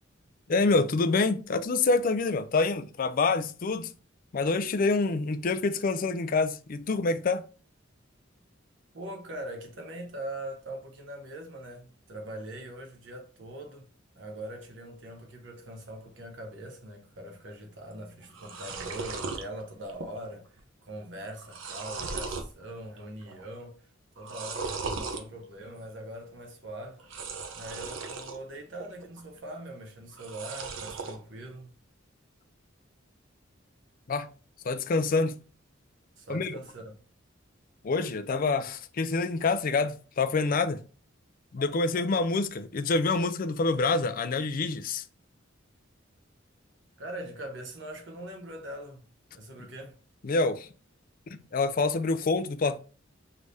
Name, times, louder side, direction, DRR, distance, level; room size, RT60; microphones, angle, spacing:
voice 1, 0.5-3.9 4.3-7.4 34.1-34.3 34.6-35.4 36.3-36.6 37.8-40.8 41.5-45.0 50.2-50.7 51.3-52.8, left 3 dB, 45° left, 0.4 m, -26 dB
voice 2, 8.9-13.9 14.2-23.9 24.2-27.0 27.5-31.7 36.2-36.8 47.0-49.0 49.3-50.0, right 1 dB, 65° right, 1.0 m, -42 dB
sound 1, 17.9-18.0 18.2-19.4 19.9-20.3 20.6-20.7 21.2-22.5 23.0-23.4 24.2-25.2 27.0-28.4 28.8-29.4 30.1-31.2, right 4 dB, 85° right, 0.7 m, -37 dB
4.8 x 3.3 x 2.6 m
head